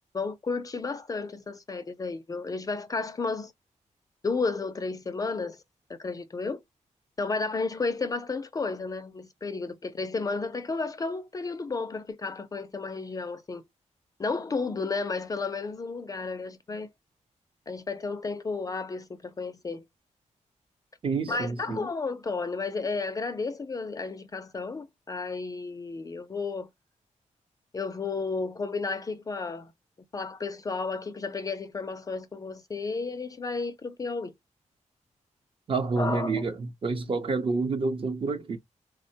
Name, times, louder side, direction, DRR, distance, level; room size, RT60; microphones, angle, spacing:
voice 1, 0.1-3.5 4.2-5.6 5.9-6.6 7.2-13.6 14.2-16.9 17.7-19.8 21.3-26.7 27.7-29.7 30.1-34.3 36.0-36.5, left 4 dB, 30° left, 0.4 m, -32 dB
voice 2, 21.0-21.8 35.7-38.6, right 4 dB, 45° right, 0.7 m, -28 dB
3.5 x 2.1 x 2.7 m
wide cardioid pair, 150°, 13 cm